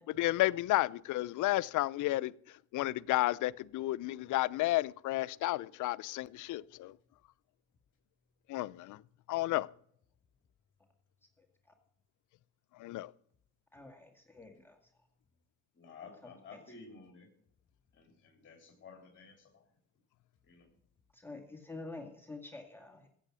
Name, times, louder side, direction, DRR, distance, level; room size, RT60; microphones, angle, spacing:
voice 1, 0.1-2.3 2.7-6.9 8.5-9.0 9.3-9.7 12.8-13.1, left 17 dB, 80° left, 0.5 m, -32 dB
voice 2, 13.7-14.7 21.2-23.1, left 2 dB, 5° left, 2.0 m, -47 dB
voice 3, 15.7-17.3 17.9-19.6 20.4-20.7, left 4 dB, 40° left, 3.2 m, -53 dB
15.5 x 7.6 x 6.3 m
cardioid pair, 90°, 30 cm